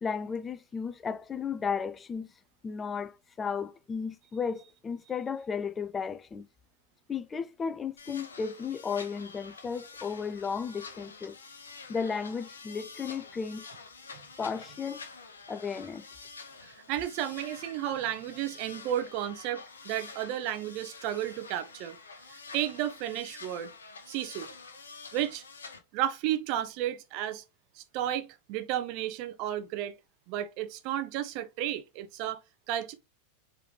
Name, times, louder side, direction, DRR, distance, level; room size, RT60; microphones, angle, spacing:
voice 1, 0.0-2.3 2.6-6.5 7.1-11.4 11.9-13.7 14.4-15.0 15.5-16.0, left 6 dB, 20° left, 0.4 m, -34 dB
sound 1, 8.0-25.8, left 4 dB, 70° left, 0.8 m, -48 dB
voice 2, 16.6-22.0 22.3-23.7 24.1-24.5 25.1-25.4 25.9-27.4 27.7-30.0 30.3-32.9, right 12 dB, 45° right, 0.7 m, -33 dB
4.7 x 3.3 x 3.1 m
figure-of-eight pair, 90°, 0 cm